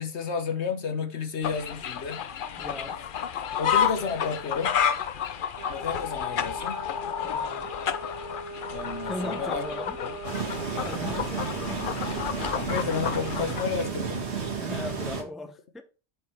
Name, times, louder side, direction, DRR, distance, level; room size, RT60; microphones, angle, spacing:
voice 1, 0.0-2.2 3.6-4.8 5.7-6.8 8.7-9.6 10.0-10.1 12.5-14.3, left 5 dB, 70° left, 1.4 m, -31 dB
sound 1, 1.4-13.6, left 8 dB, 55° left, 0.7 m, -31 dB
voice 2, 2.6-3.0 7.2-7.7 9.0-10.0 10.8-11.9 14.6-15.8, left 2 dB, ahead, 0.7 m, -38 dB
Trumpet, 5.5-11.2, right 3 dB, 85° right, 2.2 m, -41 dB
sound 2, 10.2-15.2, right 5 dB, 70° right, 1.8 m, -32 dB
7.7 x 5.3 x 4.4 m
omnidirectional pair, 1.2 m